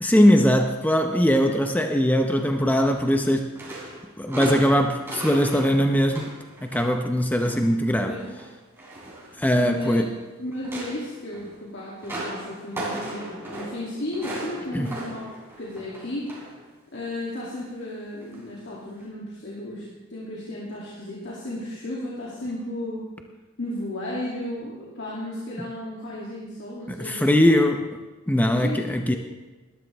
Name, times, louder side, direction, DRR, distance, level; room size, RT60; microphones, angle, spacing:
voice 1, 0.0-3.5 4.2-6.3 6.6-8.2 9.4-10.2 14.7-14.9 25.6-25.7 26.9-27.8 28.3-29.2, equal, 10° left, 5 dB, 0.7 m, -21 dB
sound 1, 2.8-3.3 3.5-7.7 8.0-10.1 10.5-16.6 16.9-17.2 18.2-18.4 19.0-19.1, right 1 dB, 10° right, 3.7 m, -37 dB
voice 2, 8.0-8.4 9.6-16.4 16.9-19.8 20.1-23.0 23.6-27.5 28.4-28.8 29.1-29.2, left 1 dB, 60° left, -5 dB, 2.6 m, -34 dB
19.0 x 12.0 x 3.4 m, 1.2 s
head